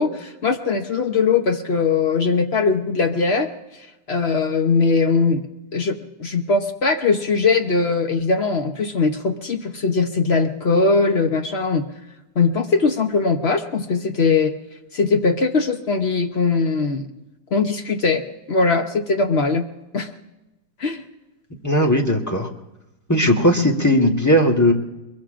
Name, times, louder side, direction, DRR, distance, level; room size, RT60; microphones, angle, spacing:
voice 1, 0.0-3.5 4.1-5.5 5.7-5.9 6.2-11.9 12.4-14.5 14.9-17.1 17.5-18.2 18.5-19.6 19.9-20.1 20.8-21.0, left 4 dB, 50° left, 5 dB, 0.8 m, -20 dB
voice 2, 21.6-22.5 23.1-24.7, equal, 10° left, 1 dB, 1.1 m, -17 dB
22.5 x 22.0 x 2.5 m, 0.99 s
omnidirectional pair, 2.0 m